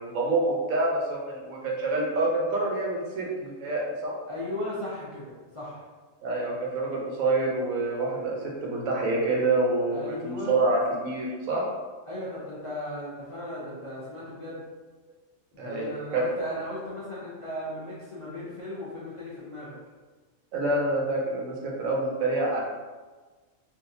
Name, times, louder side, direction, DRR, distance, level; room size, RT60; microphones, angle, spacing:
voice 1, 0.0-4.1 6.2-11.6 15.6-16.2 20.5-22.6, right 2 dB, 90° right, -2 dB, 1.2 m, -27 dB
voice 2, 4.3-5.8 9.9-10.5 12.1-14.6 15.5-19.8, left 1 dB, 45° left, -8 dB, 0.4 m, -36 dB
3.5 x 2.4 x 2.6 m, 1.4 s
omnidirectional pair, 1.4 m